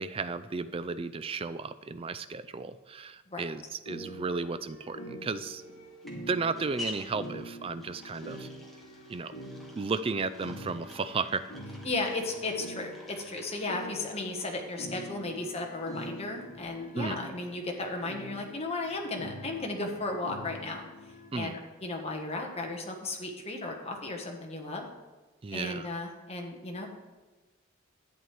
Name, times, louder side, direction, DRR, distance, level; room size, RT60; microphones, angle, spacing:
voice 1, 0.0-5.6 6.1-8.5 9.1-9.4 9.8-11.5 16.9-17.2 21.3-21.5 25.4-25.9, right 4 dB, 25° right, 13 dB, 0.3 m, -34 dB
sound 1, 3.9-21.3, equal, 70° left, 2.6 m, -45 dB
sound 2, 5.2-16.4, left 2 dB, ahead, 1.4 m, -49 dB
voice 2, 11.8-20.8 21.3-24.8 25.5-26.9, left 2 dB, 30° left, 2 dB, 1.3 m, -35 dB
11.0 x 9.1 x 3.3 m, 1.3 s
head